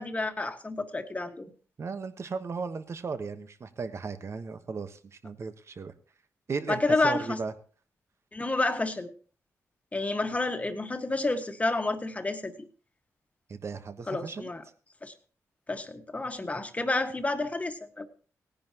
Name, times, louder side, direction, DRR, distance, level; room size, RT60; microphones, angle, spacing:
voice 1, 0.0-1.5 6.7-7.4 8.3-9.1 9.9-12.5 14.1-14.6 15.0-15.1 15.7-18.1, left 2 dB, 25° left, 6 dB, 1.6 m, -29 dB
voice 2, 1.8-5.9 6.5-7.5 13.5-14.5, right 4 dB, 50° right, 10 dB, 1.2 m, -36 dB
18.0 x 10.5 x 2.9 m, 0.40 s
cardioid pair, 90°, 6 cm